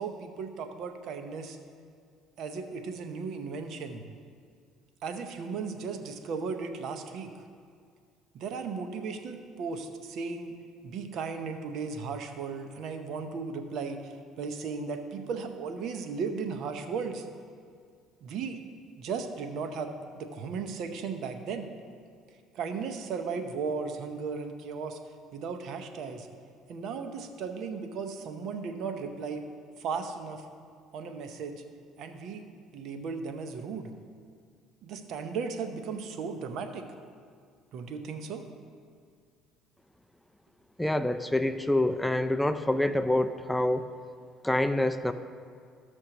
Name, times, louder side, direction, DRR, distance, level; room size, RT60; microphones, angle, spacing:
voice 1, 0.0-1.6 2.4-4.0 5.0-7.3 8.3-10.5 10.8-17.2 18.2-18.6 19.0-21.7 22.5-25.0 25.3-26.3 26.7-29.4 29.8-30.4 30.9-31.6 32.0-32.4 32.7-33.9 34.8-36.9 37.7-38.4, right 5 dB, 65° right, 7 dB, 0.8 m, -36 dB
voice 2, 40.8-43.9 44.4-45.1, left 1 dB, 5° left, 10 dB, 0.4 m, -26 dB
14.5 x 6.2 x 3.0 m, 2.1 s
supercardioid pair, 80°, 0 cm